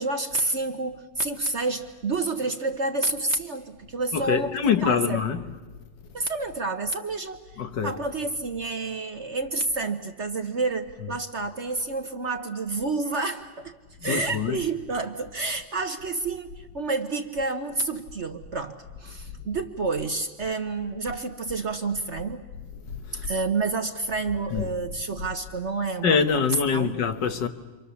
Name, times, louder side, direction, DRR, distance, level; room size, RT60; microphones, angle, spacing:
voice 1, 0.0-5.2 6.1-7.4 7.8-13.7 14.0-22.5 23.1-26.4 26.7-27.0, right 3 dB, 45° right, 1.1 m, -29 dB
voice 2, 4.1-5.4 7.6-7.9 14.0-14.6 22.9-23.3 24.5-24.7 26.0-27.5, left 6 dB, 70° left, 1.9 m, -25 dB
30.0 x 25.0 x 7.0 m
omnidirectional pair, 2.0 m